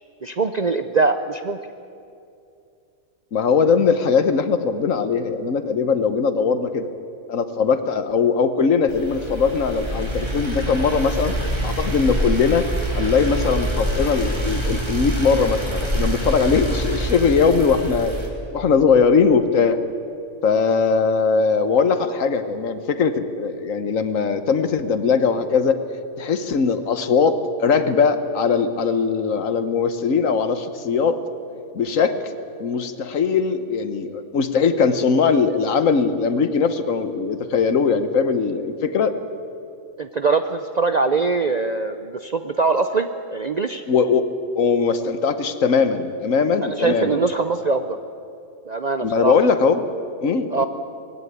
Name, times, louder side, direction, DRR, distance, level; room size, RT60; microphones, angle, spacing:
voice 1, 0.2-1.6 40.0-43.8 46.6-48.0 48.7-49.4 50.5-50.6, right 4 dB, 45° right, 8 dB, 0.5 m, -22 dB
voice 2, 3.3-6.9 7.3-11.3 11.6-12.7 12.9-18.1 18.5-19.8 20.4-25.8 26.2-31.2 31.7-39.2 43.9-44.3 44.6-47.3 49.0-49.8 50.2-50.7, left 5 dB, 65° left, 11 dB, 1.4 m, -20 dB
sound 1, 8.9-18.3, right 1 dB, 20° right, 2.9 m, -26 dB
19.5 x 16.0 x 9.5 m, 2.6 s
omnidirectional pair, 1.5 m